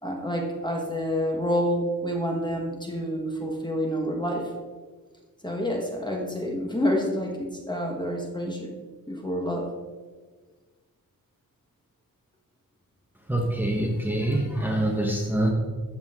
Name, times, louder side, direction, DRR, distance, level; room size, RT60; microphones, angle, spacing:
voice 1, 0.0-4.5 5.4-8.7 9.1-9.7, equal, 10° left, 1 dB, 1.3 m, -28 dB
voice 2, 13.3-15.5, right 1 dB, 5° right, -1 dB, 1.2 m, -25 dB
13.5 x 7.4 x 3.7 m, 1.5 s
wide cardioid pair, 155°, 35 cm